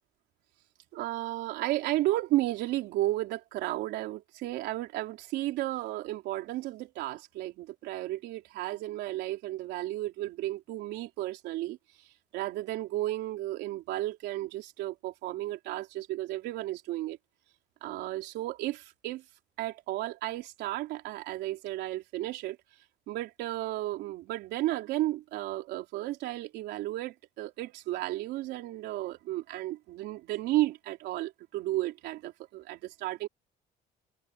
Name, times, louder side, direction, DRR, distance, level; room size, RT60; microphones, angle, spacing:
voice 1, 0.9-11.8 12.3-17.2 17.8-19.2 19.6-22.6 23.1-33.3, right 16 dB, 85° right, 3.7 m, -33 dB
cardioid pair, 110°, 17 cm